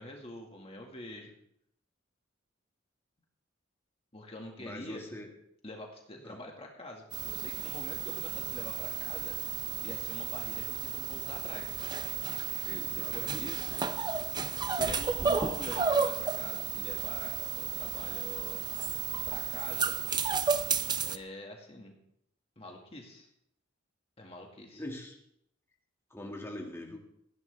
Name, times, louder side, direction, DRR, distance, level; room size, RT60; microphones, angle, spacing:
voice 1, 0.0-1.3 4.1-5.0 5.6-9.4 9.8-11.8 12.9-14.2 14.7-18.6 19.3-20.0 21.0-22.0 22.6-23.3 24.2-24.8, left 1 dB, 30° left, 1 dB, 2.0 m, -45 dB
voice 2, 4.6-5.3 6.2-6.4 12.6-13.5 24.7-25.2 26.1-27.0, left 1 dB, 15° left, 0 dB, 2.1 m, -43 dB
sound 1, 7.1-21.2, right 6 dB, 20° right, 0.6 m, -33 dB
18.5 x 15.0 x 3.5 m, 0.72 s
head